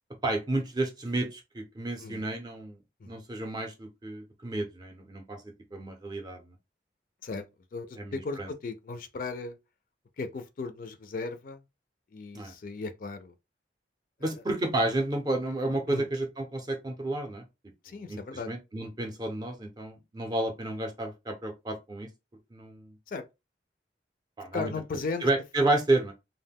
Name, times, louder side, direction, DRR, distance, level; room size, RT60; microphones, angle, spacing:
voice 1, 0.2-2.8 3.1-5.4 5.7-6.5 8.0-8.5 12.3-12.5 14.2-17.4 18.0-18.2 18.5-22.1 22.5-23.0 24.4-24.7 25.2-26.1, right 2 dB, 25° right, 0.5 m, -31 dB
voice 2, 7.7-9.6 10.2-11.6 12.1-13.3 14.2-14.3 15.9-16.1 17.8-18.5 23.1-23.2 24.5-25.2, left 4 dB, 50° left, 0.3 m, -36 dB
2.1 x 2.1 x 3.4 m
head